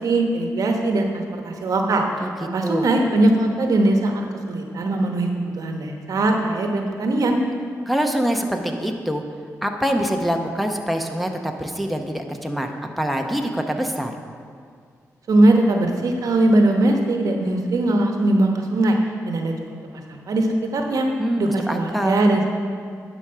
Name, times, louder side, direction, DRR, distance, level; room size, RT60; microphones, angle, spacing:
voice 1, 0.0-2.0 2.4-5.3 5.6-7.4 15.3-19.0 19.3-19.5 19.9-21.1 21.4-22.5, right 2 dB, 70° right, 3 dB, 1.0 m, -20 dB
voice 2, 7.9-9.2 9.6-14.1 21.2-22.2, equal, ahead, 3 dB, 0.9 m, -24 dB
11.0 x 4.9 x 5.7 m, 2.1 s
cardioid pair, 60°, 6 cm